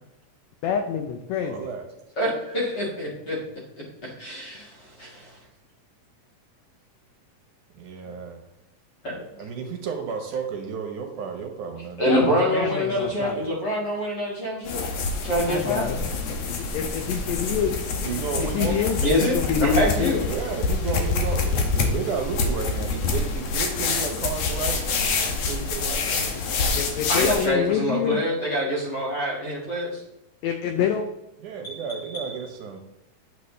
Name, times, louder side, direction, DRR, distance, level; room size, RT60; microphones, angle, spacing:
voice 1, 0.6-1.7 12.0-13.5 15.5-16.0 16.5-17.7 18.4-20.2 26.7-28.2 30.4-31.0, left 8 dB, 80° left, 6 dB, 1.5 m, -27 dB
voice 2, 1.4-1.9 7.7-8.5 9.4-12.6 13.0-13.1 18.0-19.0 20.3-26.8 31.4-32.8, right 6 dB, 75° right, 3 dB, 2.4 m, -33 dB
voice 3, 2.2-3.4 3.8-4.7 5.0-5.3 9.0-9.2 12.0-14.8 15.2-15.9 19.0-20.3 27.1-30.0 31.6-31.8 32.1-32.3, equal, 40° left, -3 dB, 2.0 m, -25 dB
sound 1, 14.7-27.5, left 4 dB, 65° left, 1.8 m, -26 dB
9.3 x 6.9 x 3.2 m, 0.90 s
omnidirectional pair, 3.8 m